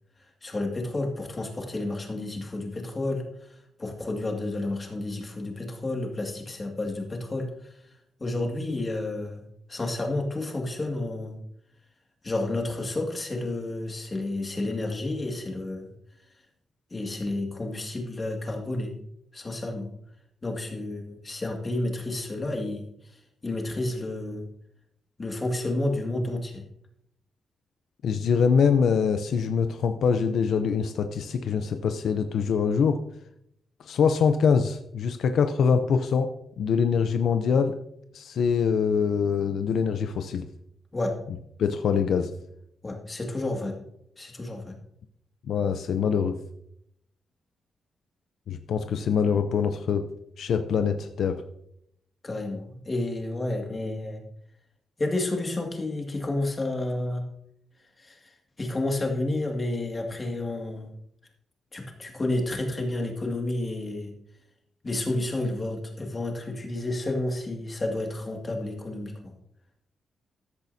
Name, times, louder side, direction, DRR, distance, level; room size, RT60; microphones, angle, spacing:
voice 1, 0.4-3.2 3.8-7.5 8.2-9.4 9.7-11.4 12.2-15.9 16.9-18.9 19.3-19.9 20.4-22.9 23.4-24.5 25.2-26.6 40.9-41.1 42.8-43.8 44.2-44.7 52.2-54.2 55.0-57.2 58.0-58.3 58.6-60.9 61.7-64.1 64.8-69.3, left 2 dB, 25° left, 2 dB, 2.1 m, -30 dB
voice 2, 28.0-33.0 33.8-36.3 36.6-37.8 38.1-40.4 41.6-42.3 45.5-46.3 48.5-50.0 50.4-51.4, left 6 dB, 75° left, 8 dB, 0.6 m, -24 dB
14.0 x 10.5 x 2.7 m, 0.76 s
cardioid pair, 125°, 0 cm